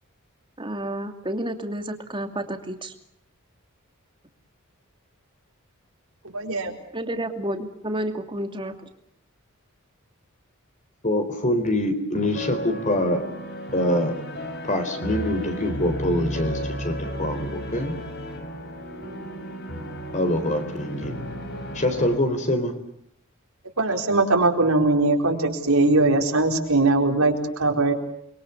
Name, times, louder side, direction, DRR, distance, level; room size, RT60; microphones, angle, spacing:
voice 1, 0.6-2.9 6.9-8.9, right 1 dB, 20° right, 6 dB, 2.6 m, -30 dB
voice 2, 6.2-6.7 23.8-27.9, right 2 dB, 75° right, 2 dB, 4.5 m, -21 dB
voice 3, 11.0-13.2 13.7-14.1 14.7-17.9 20.1-21.2 21.7-22.7, left 1 dB, 35° left, 7 dB, 4.3 m, -24 dB
sound 1, 12.1-22.2, equal, 50° left, 5.0 m, -34 dB
29.5 x 23.0 x 7.3 m, 0.72 s
head